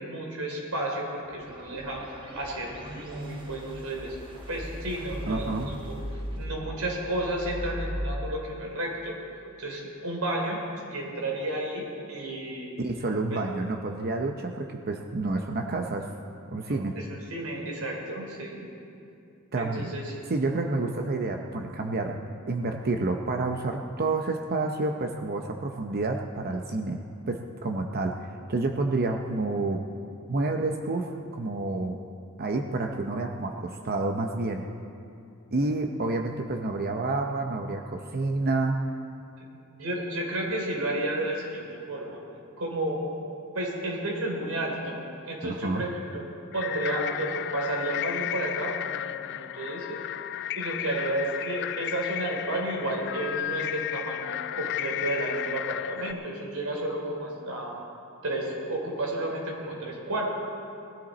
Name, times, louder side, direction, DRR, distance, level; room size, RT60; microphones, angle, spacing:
voice 1, 0.0-4.2 4.5-6.0 6.4-9.2 9.6-10.6 10.9-12.7 13.3-13.4 16.7-18.7 19.5-20.2 39.8-42.2 42.6-43.0 43.5-46.2 46.5-50.0 50.5-57.8 58.2-60.2, right 1 dB, 80° right, -1 dB, 3.4 m, -32 dB
sound 1, 1.1-8.0, equal, 25° right, 1.4 m, -39 dB
voice 2, 5.3-5.7 12.8-16.1 16.5-17.0 19.5-19.8 20.3-22.2 22.5-29.8 30.3-32.0 32.4-34.7 35.5-38.9 45.4-45.8, right 2 dB, 45° right, 4 dB, 0.7 m, -29 dB
sound 2, 46.5-56.1, left 12 dB, 55° left, 0.3 m, -33 dB
19.0 x 13.5 x 4.2 m, 2.6 s
head